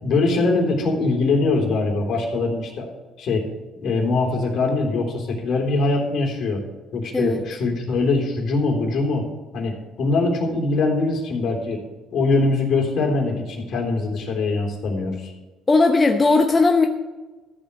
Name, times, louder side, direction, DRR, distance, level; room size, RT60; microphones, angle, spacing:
voice 1, 0.0-2.9 3.2-3.4 3.8-6.6 6.9-9.2 9.5-11.8 12.1-15.3, left 3 dB, 60° left, 0 dB, 3.5 m, -22 dB
voice 2, 15.7-16.9, left 3 dB, 20° left, 4 dB, 0.8 m, -17 dB
14.0 x 5.1 x 8.2 m, 1.2 s
cardioid pair, 100°, 0 cm